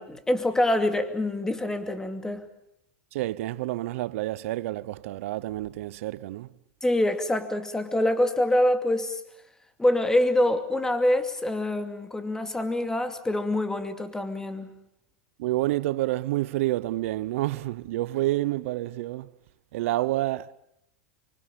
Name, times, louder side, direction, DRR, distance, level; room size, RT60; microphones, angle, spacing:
voice 1, 0.0-2.5 6.8-9.2 9.8-14.7, left 1 dB, 5° left, 2.5 m, -25 dB
voice 2, 3.1-6.5 15.4-19.3 19.7-20.5, right 16 dB, 65° right, 0.9 m, -28 dB
25.0 x 24.5 x 7.1 m
hypercardioid pair, 120°, 8 cm